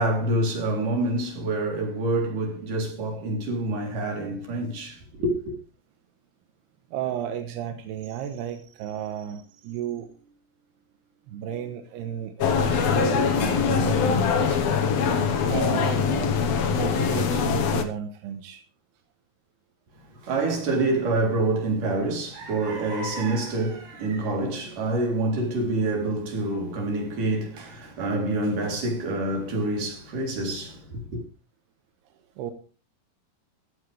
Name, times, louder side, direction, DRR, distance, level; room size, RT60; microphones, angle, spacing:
voice 1, 0.0-5.5 20.2-31.2, right 2 dB, 55° right, 5.1 m, -27 dB
voice 2, 6.9-10.3 11.3-16.4 16.7-18.6 32.4-32.5, right 10 dB, 90° right, 3.2 m, -33 dB
sound 1, 12.4-17.8, left 6 dB, 60° left, 1.8 m, -23 dB
15.0 x 15.0 x 3.4 m
omnidirectional pair, 4.5 m